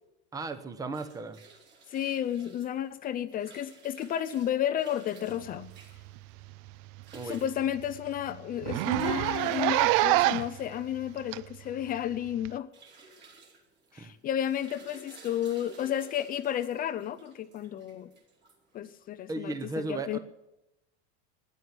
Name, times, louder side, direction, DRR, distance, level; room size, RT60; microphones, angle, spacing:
voice 1, 0.3-1.4 7.1-7.4 13.9-14.1 19.3-20.2, right 3 dB, 10° right, 10 dB, 0.9 m, -35 dB
sound 1, 0.7-19.2, right 4 dB, 30° right, 2.9 m, -55 dB
voice 2, 1.9-5.7 7.2-12.7 13.9-18.1 18.7-20.2, left 10 dB, 25° left, 12 dB, 0.5 m, -32 dB
Zipper (clothing), 6.0-6.2 6.5-6.6 7.0-7.1 7.5-7.6 7.8-8.0 8.6-10.6 11.3-11.4 12.4-12.5, right 18 dB, 55° right, 0.5 m, -25 dB
12.5 x 10.5 x 9.9 m, 0.91 s
supercardioid pair, 155°, 33 cm